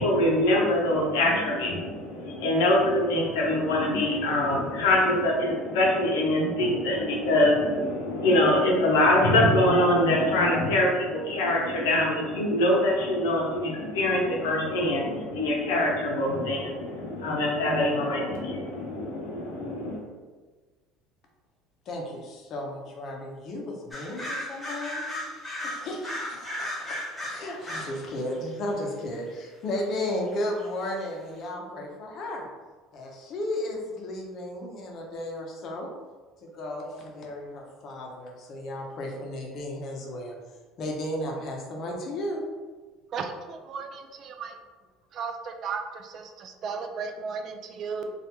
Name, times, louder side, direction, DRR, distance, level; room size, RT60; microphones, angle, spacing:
voice 1, 0.0-20.0, left 1 dB, 90° left, -2 dB, 0.6 m, -24 dB
voice 2, 21.9-25.1 25.6-32.5 32.9-35.9 36.4-40.3 40.8-42.4, left 1 dB, 50° left, 0 dB, 0.6 m, -34 dB
sound 1, 23.9-28.0 28.3-28.7 30.3-30.4 30.6-30.7 31.0-31.1, left 1 dB, 15° left, 0.9 m, -35 dB
voice 3, 43.1-44.6 45.1-48.1, right 5 dB, 50° right, 5 dB, 0.3 m, -35 dB
2.4 x 2.1 x 2.8 m, 1.3 s
supercardioid pair, 100°, 0 cm